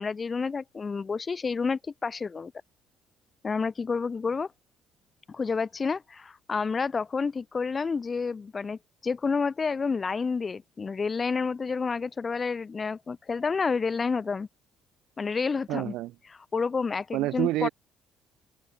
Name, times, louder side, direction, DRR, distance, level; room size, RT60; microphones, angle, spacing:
voice 1, 0.0-2.5 3.4-4.5 5.3-14.5 15.2-15.9 16.5-17.7, left 5 dB, 25° left, 5.2 m, -29 dB
voice 2, 15.7-16.1 17.1-17.7, right 17 dB, 85° right, 7.7 m, -28 dB
cardioid pair, 160°, 0 cm